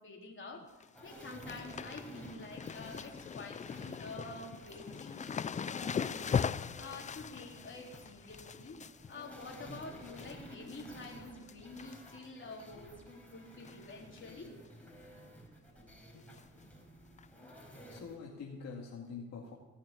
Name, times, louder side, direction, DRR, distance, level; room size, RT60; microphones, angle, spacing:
voice 1, 0.0-5.2 5.7-6.4 6.8-8.8 9.1-14.6, left 3 dB, 40° left, -1 dB, 3.8 m, -48 dB
sound 1, 0.5-0.9 1.1-10.3 10.7-11.1 11.4-12.3 12.6-12.7 13.6-13.9 14.2-14.3 14.7-14.8 16.3-16.4 17.2-17.3, left 7 dB, 25° left, 0.4 m, -40 dB
sound 2, 0.9-18.2, equal, 5° left, 4.7 m, -53 dB
voice 2, 17.9-19.5, left 5 dB, 65° left, -2 dB, 2.1 m, -45 dB
18.0 x 6.6 x 8.7 m, 1.1 s
cardioid pair, 90°, 30 cm